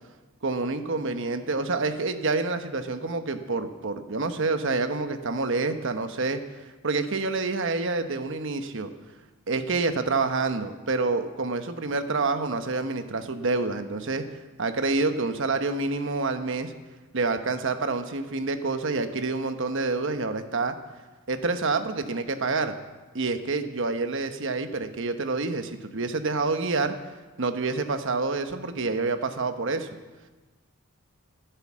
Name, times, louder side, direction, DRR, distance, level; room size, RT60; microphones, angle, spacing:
voice 1, 0.4-6.4 6.8-8.9 9.5-14.2 14.6-16.7 17.1-20.7 21.3-22.7 23.1-26.9 27.4-29.9, right 3 dB, 60° right, 8 dB, 1.1 m, -27 dB
13.5 x 10.5 x 7.4 m, 1.3 s
head